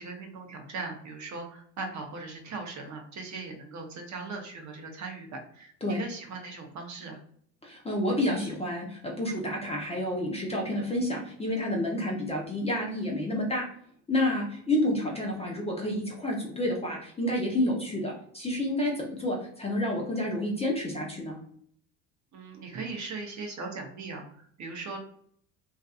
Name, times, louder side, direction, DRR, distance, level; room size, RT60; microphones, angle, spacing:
voice 1, 0.0-7.2 22.3-25.0, right 3 dB, 40° right, 2 dB, 0.7 m, -39 dB
voice 2, 7.6-13.7 14.1-21.4, left 1 dB, 15° left, -2 dB, 0.6 m, -29 dB
2.6 x 2.3 x 2.3 m, 0.62 s
supercardioid pair, 90°, 46 cm